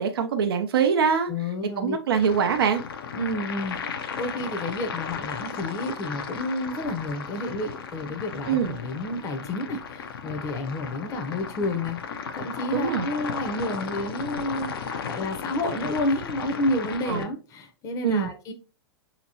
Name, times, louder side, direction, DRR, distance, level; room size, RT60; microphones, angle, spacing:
voice 1, 0.0-1.3 1.8-2.8 8.5-8.8 12.7-13.1 17.1-17.3 18.0-18.3, right 6 dB, 65° right, 0.5 m, -23 dB
voice 2, 1.3-2.0 3.1-18.5, left 1 dB, 25° left, 0.7 m, -30 dB
sound 1, 2.1-17.2, left 6 dB, 65° left, 0.6 m, -35 dB
5.7 x 2.9 x 2.8 m
figure-of-eight pair, 105°, 13 cm